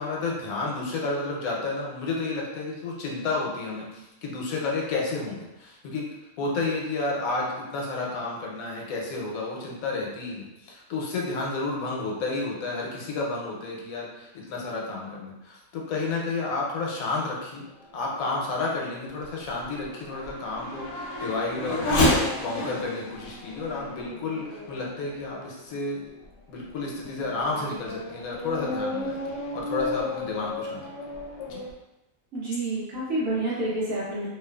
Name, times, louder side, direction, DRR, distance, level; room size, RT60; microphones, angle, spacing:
voice 1, 0.0-6.1 6.4-17.7 17.9-26.1 26.5-29.2 29.5-30.9 31.5-31.6, left 3 dB, 85° left, -2 dB, 1.1 m, -31 dB
Race car auto racing / Accelerating revving vroom, 17.7-25.6 26.2-26.3 26.9-31.7, left 1 dB, 60° left, 0.8 m, -32 dB
voice 2, 32.3-34.3, right 2 dB, 80° right, -9 dB, 1.3 m, -28 dB
2.9 x 2.3 x 2.2 m, 0.96 s
omnidirectional pair, 1.5 m